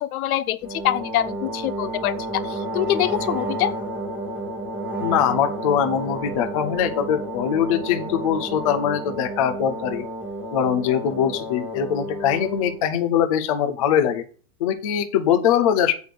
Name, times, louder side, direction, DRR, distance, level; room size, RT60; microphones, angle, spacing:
voice 1, 0.0-2.1 2.4-3.8, left 13 dB, 70° left, 0.9 m, -24 dB
sound 1, 0.6-12.8, right 1 dB, 5° right, 1.2 m, -31 dB
voice 2, 5.0-10.0 10.5-14.2 14.6-15.9, left 9 dB, 25° left, 0.3 m, -22 dB
7.8 x 5.1 x 6.3 m
supercardioid pair, 170°, 45 cm